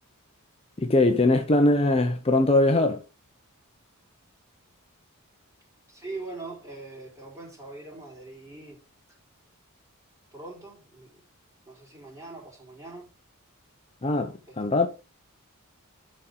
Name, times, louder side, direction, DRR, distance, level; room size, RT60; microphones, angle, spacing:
voice 1, 0.8-3.0 14.0-14.9, left 2 dB, 25° left, 0.7 m, -21 dB
voice 2, 5.9-8.8 10.3-11.2 11.6-13.1 14.5-14.6, right 3 dB, 15° right, 4.6 m, -42 dB
11.0 x 4.4 x 3.9 m
head